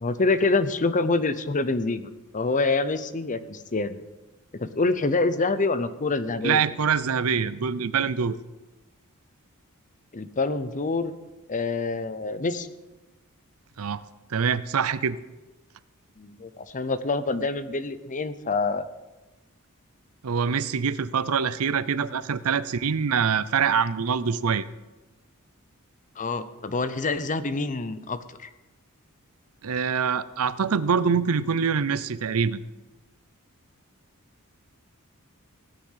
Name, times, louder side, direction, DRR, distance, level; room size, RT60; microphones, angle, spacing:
voice 1, 0.0-4.0 4.5-6.6 10.1-11.1 11.5-12.7 16.2-18.8 26.2-28.5, left 3 dB, 35° left, 13 dB, 0.7 m, -26 dB
voice 2, 6.4-8.4 13.8-14.0 14.3-15.2 20.2-24.7 29.6-32.6, right 6 dB, 70° right, 16 dB, 0.6 m, -24 dB
17.0 x 9.3 x 5.7 m, 1.1 s
head